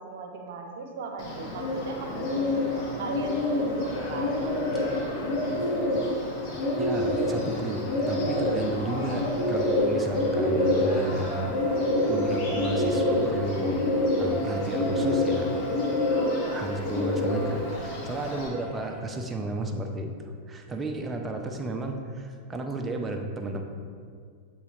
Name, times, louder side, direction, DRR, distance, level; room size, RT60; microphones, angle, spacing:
voice 1, 0.0-5.0, right 4 dB, 55° right, 3 dB, 0.8 m, -38 dB
Bird, 1.2-18.5, left 1 dB, 40° left, 1.1 m, -27 dB
sound 1, 4.7-4.8 6.5-10.0 10.3-19.0 20.7-20.8 21.1-21.2 21.5-21.6, right 1 dB, 10° left, 1.0 m, -41 dB
voice 2, 6.8-11.6 12.1-13.9 14.2-15.6 16.5-23.6, right 2 dB, 15° right, 3 dB, 0.6 m, -33 dB
8.2 x 3.9 x 3.1 m, 2.1 s
figure-of-eight pair, 90°, 0 cm